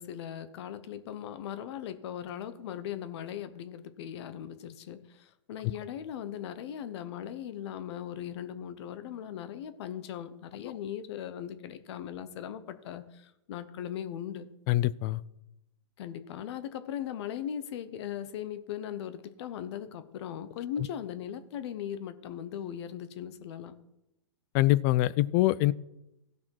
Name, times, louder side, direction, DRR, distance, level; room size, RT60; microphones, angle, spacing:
voice 1, 0.0-14.5 16.0-23.7, left 9 dB, 55° left, 12 dB, 0.9 m, -39 dB
voice 2, 14.7-15.2 24.5-25.7, left 16 dB, 35° left, 19 dB, 0.4 m, -24 dB
16.0 x 5.8 x 4.5 m, 0.88 s
hypercardioid pair, 125°, 16 cm